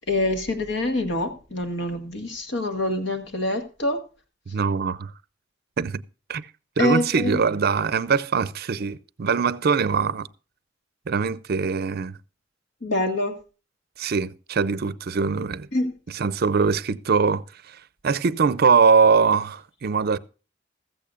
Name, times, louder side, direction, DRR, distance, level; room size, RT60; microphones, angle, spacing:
voice 1, 0.1-4.0 6.8-7.4 12.8-13.3 15.7-15.9, left 1 dB, 65° left, 1.8 m, -25 dB
voice 2, 4.5-5.1 5.8-6.0 6.3-6.5 6.8-10.3 11.1-12.2 14.0-15.7 16.1-17.8 18.0-20.2, right 5 dB, 55° right, 0.5 m, -22 dB
15.5 x 14.5 x 2.5 m
head